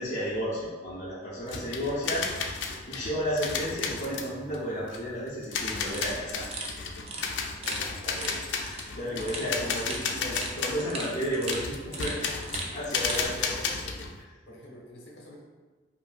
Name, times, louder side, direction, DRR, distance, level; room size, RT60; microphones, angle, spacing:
voice 1, 0.0-2.3 2.6-6.4 7.8-12.3 12.7-13.5 13.8-13.9, equal, 45° left, -9 dB, 0.7 m, -33 dB
sound 1, 1.5-14.2, left 5 dB, 85° left, 0.4 m, -33 dB
sound 2, 5.8-13.3, right 2 dB, 35° right, 0.5 m, -39 dB
voice 2, 7.6-7.9 12.5-13.0 13.5-13.7 14.5-15.4, left 1 dB, 65° left, -4 dB, 1.0 m, -48 dB
5.3 x 2.6 x 2.4 m, 1.3 s
head